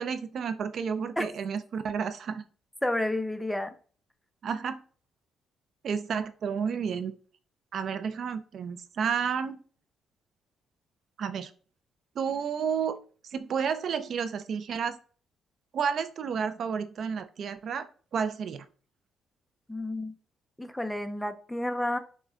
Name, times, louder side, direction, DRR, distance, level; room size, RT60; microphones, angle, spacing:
voice 1, 0.0-2.4 4.4-4.8 5.8-7.1 7.7-9.6 11.2-11.5 12.2-13.0 13.2-15.0 15.7-18.6, right 6 dB, 60° right, 0.4 m, -31 dB
voice 2, 2.8-3.7 19.7-20.1 20.6-22.0, left 1 dB, 5° left, 0.5 m, -30 dB
6.1 x 2.2 x 3.5 m
cardioid pair, 90°, 0 cm